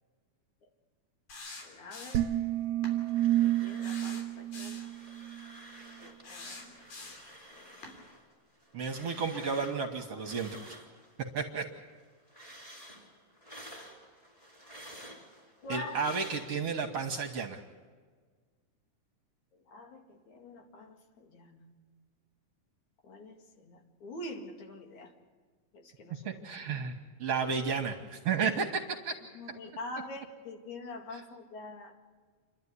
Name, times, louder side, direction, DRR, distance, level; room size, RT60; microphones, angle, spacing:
sound 1, 1.3-2.4 2.8-3.0 3.8-4.9 6.2-7.4 7.8-8.0, left 3 dB, 90° left, 4.9 m, -46 dB
voice 1, 1.6-2.3 3.4-4.9 6.0-7.1 7.5-7.9 9.3-9.5 10.1-10.2 15.6-16.1 19.7-21.8 23.0-25.1 25.7-26.3 26.8-26.9 29.3-31.9, left 2 dB, 60° left, 3 dB, 3.4 m, -45 dB
sound 2, 2.1-5.5, right 13 dB, 70° right, 2.0 m, -30 dB
sound 3, 2.8-4.2 4.5-6.3 6.6-11.4 11.7-16.9, right 1 dB, 5° left, 4.3 m, -51 dB
voice 2, 8.7-10.8 11.3-11.7 15.7-17.6 26.3-26.9 27.2-29.1 31.1-31.2, right 5 dB, 55° right, 4 dB, 2.1 m, -32 dB
29.0 x 12.0 x 9.7 m, 1.6 s
omnidirectional pair, 3.9 m